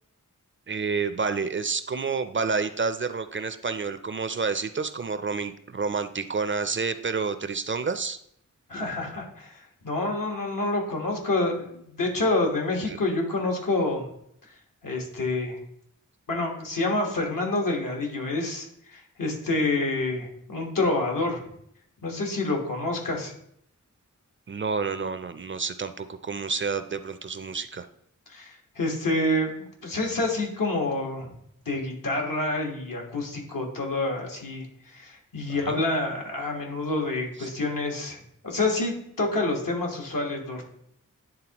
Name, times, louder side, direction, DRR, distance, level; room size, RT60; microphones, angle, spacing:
voice 1, 0.7-8.2 12.9-13.0 24.5-27.9 35.5-35.8 37.4-37.5, right 5 dB, 40° right, 11 dB, 0.4 m, -29 dB
voice 2, 8.7-14.1 14.8-15.6 16.3-21.4 22.0-23.3 28.3-31.4 31.6-40.6, left 2 dB, 80° left, 0 dB, 1.4 m, -28 dB
9.9 x 3.7 x 2.9 m, 0.71 s
wide cardioid pair, 85°, 32 cm